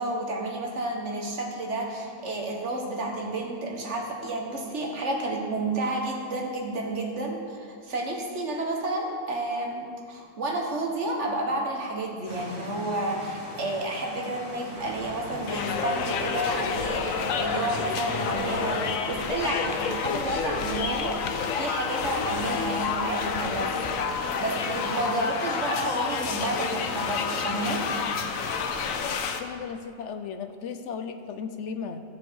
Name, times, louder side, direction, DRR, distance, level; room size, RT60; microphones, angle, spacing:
voice 1, 0.0-23.9 24.4-27.8, right 2 dB, 60° right, 1 dB, 1.7 m, -31 dB
sound 1, 12.3-29.0, equal, 25° left, 2.9 m, -41 dB
sound 2, 14.7-19.8, right 1 dB, 40° right, 1.6 m, -42 dB
sound 3, 15.5-29.4, left 6 dB, 85° left, 1.1 m, -29 dB
voice 2, 29.4-32.0, left 6 dB, 70° left, 8 dB, 0.9 m, -35 dB
14.5 x 7.3 x 4.7 m, 2.2 s
omnidirectional pair, 1.4 m